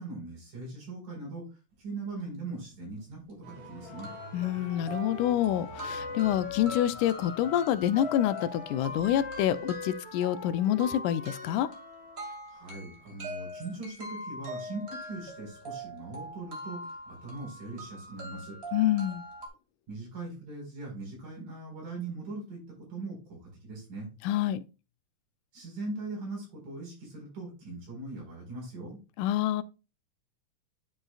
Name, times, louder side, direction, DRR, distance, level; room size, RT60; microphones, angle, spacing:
voice 1, 0.0-1.4 1.8-4.1 12.5-18.6 19.9-22.6 22.9-24.1 25.5-29.0, right 3 dB, 80° right, 6.1 m, -40 dB
sound 1, 3.0-3.1 3.5-3.6 4.0-19.5, equal, 25° right, 2.0 m, -42 dB
sound 2, 3.4-9.9, right 1 dB, 50° right, 3.1 m, -49 dB
Wind instrument woodwind instrument, 3.8-12.2, left 7 dB, 55° left, 1.9 m, -43 dB
voice 2, 4.3-11.7 18.7-19.2 24.2-24.6 29.2-29.6, left 11 dB, 85° left, 2.0 m, -27 dB
9.9 x 6.4 x 2.4 m
omnidirectional pair, 3.7 m